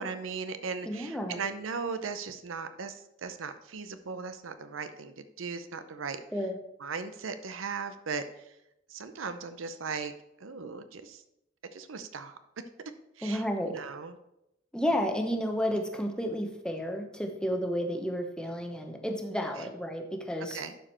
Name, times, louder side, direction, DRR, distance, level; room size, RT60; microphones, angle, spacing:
voice 1, 0.0-6.2 6.8-8.5 8.9-10.1 10.4-11.2 11.7-12.4 13.2-14.2 19.6-19.7 20.5-20.7, right 5 dB, 85° right, 10 dB, 0.7 m, -38 dB
voice 2, 0.8-1.4 6.3-6.6 13.2-13.8 14.7-20.6, equal, 5° left, 3 dB, 0.9 m, -31 dB
11.5 x 4.9 x 4.4 m, 0.85 s
head